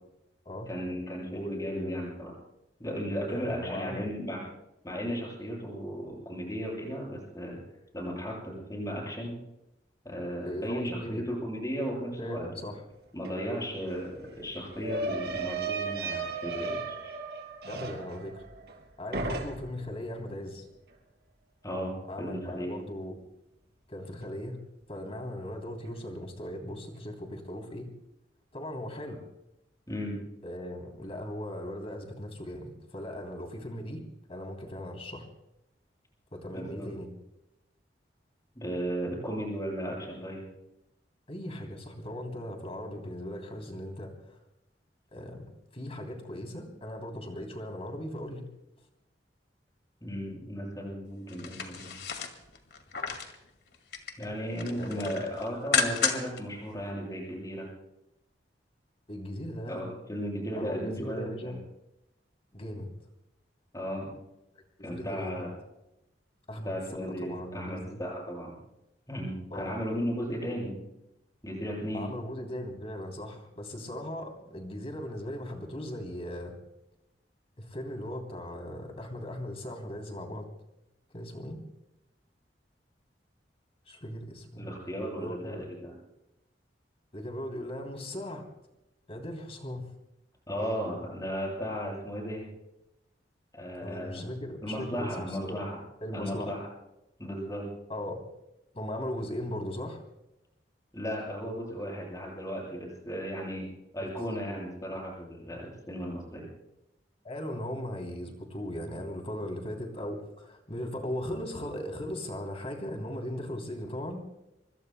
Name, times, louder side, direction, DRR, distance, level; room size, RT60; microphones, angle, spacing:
voice 1, 0.7-2.3 2.8-4.4 4.8-7.6 7.9-9.3 10.0-12.7 13.1-17.0 21.6-22.8 29.9-30.2 36.5-36.9 38.5-40.4 50.0-52.0 54.2-57.7 59.7-61.6 63.7-64.1 64.8-65.5 66.6-68.5 69.1-70.8 71.4-72.1 84.6-86.0 90.5-92.5 93.5-94.3 94.6-95.8 96.1-96.7 97.2-97.7 100.9-103.7 103.9-106.5, equal, 20° left, -2 dB, 7.6 m, -35 dB
voice 2, 1.3-2.0 3.3-4.1 10.4-11.2 12.2-12.8 17.7-18.4 19.0-20.6 22.1-23.1 23.9-24.6 24.9-27.9 28.5-29.3 30.4-35.3 36.3-37.1 41.3-44.4 45.1-48.5 54.8-55.1 59.1-59.9 60.5-61.6 62.5-62.9 64.8-65.4 66.5-66.7 67.0-68.0 69.5-69.7 71.9-76.5 77.6-80.5 81.1-81.6 83.9-84.7 85.2-85.7 87.1-88.4 89.1-89.9 93.8-95.6 96.0-96.5 97.9-98.2 98.7-100.0 107.2-114.2, left 1 dB, 35° left, 3 dB, 3.2 m, -38 dB
sound 1, 13.2-13.3 13.6-18.8 19.1-19.9, right 3 dB, 65° right, 3.1 m, -35 dB
sound 2, 51.3-53.4 53.7-54.3 54.6-56.4 56.8-56.9, left 5 dB, 65° left, 2.1 m, -32 dB
26.0 x 24.5 x 2.2 m, 0.89 s
head